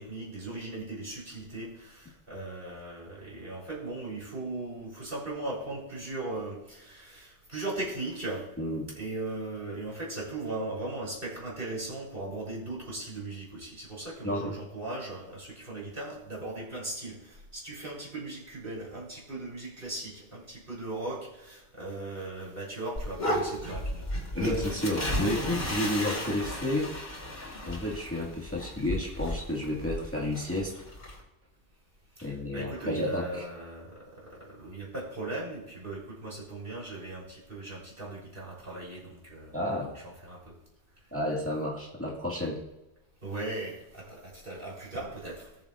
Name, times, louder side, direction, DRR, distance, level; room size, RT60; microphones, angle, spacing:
voice 1, 0.0-8.4 9.0-24.0 32.2-39.8 40.0-40.5 43.2-45.5, right 2 dB, 50° right, -4 dB, 3.8 m, -38 dB
voice 2, 8.6-8.9 14.2-14.5 24.3-26.9 27.7-30.7 32.2-33.5 39.5-39.9 41.1-42.6, left 1 dB, 10° left, -4 dB, 1.8 m, -31 dB
sound 1, 23.0-31.2, left 1 dB, 55° left, 2.7 m, -34 dB
19.0 x 7.3 x 2.5 m, 0.98 s
omnidirectional pair, 1.2 m